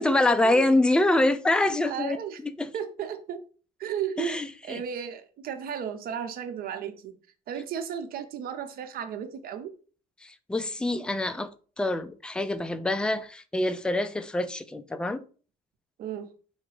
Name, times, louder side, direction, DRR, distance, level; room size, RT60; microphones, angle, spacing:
voice 1, 0.0-2.2 2.4-2.7 4.2-4.8 10.5-11.5 11.8-15.2, left 2 dB, 5° left, 0.4 m, -25 dB
voice 2, 1.9-2.4 2.7-3.4 3.8-7.1 7.5-9.7 16.0-16.3, right 8 dB, 60° right, 0.8 m, -34 dB
4.9 x 2.2 x 4.6 m
cardioid pair, 110°, 17 cm